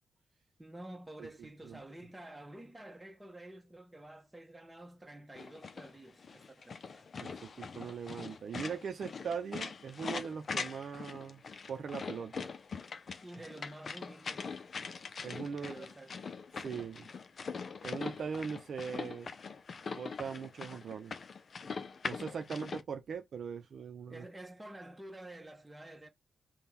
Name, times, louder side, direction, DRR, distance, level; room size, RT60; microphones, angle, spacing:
voice 1, 0.6-7.1 13.2-14.6 15.6-16.1 22.5-22.7 24.1-26.1, right 1 dB, 10° right, 1.1 m, -50 dB
sound 1, 5.4-22.8, left 5 dB, 50° left, 0.6 m, -42 dB
voice 2, 7.2-11.4 11.7-12.5 15.2-15.9 16.5-17.1 17.8-19.3 19.8-21.1 22.1-24.2, right 6 dB, 65° right, 0.7 m, -40 dB
3.5 x 2.3 x 4.3 m
cardioid pair, 85°, 0 cm